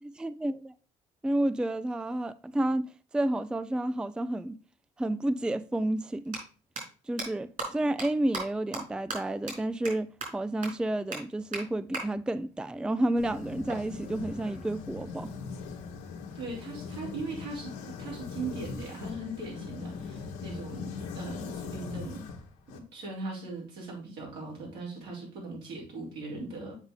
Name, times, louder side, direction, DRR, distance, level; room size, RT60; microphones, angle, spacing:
voice 1, 0.0-0.7 1.2-4.6 5.0-6.4 7.1-15.3, right 1 dB, 5° right, 0.4 m, -30 dB
sound 1, 6.3-6.4 6.8-6.9 7.2-7.3 7.6-7.7 8.0-8.1 8.3-8.4 8.7-8.8 9.1-9.2 9.5-9.6 9.9-10.0 10.2-10.3 10.6-10.7 11.1-11.2 11.5-11.6 11.9-12.0 13.7-14.7, right 3 dB, 55° right, 4.3 m, -36 dB
sound 2, 13.2-22.8, left 5 dB, 90° left, 1.1 m, -40 dB
voice 2, 16.3-22.3 22.7-26.8, right 3 dB, 80° right, 4.4 m, -39 dB
7.2 x 5.1 x 3.9 m
supercardioid pair, 70°, 17 cm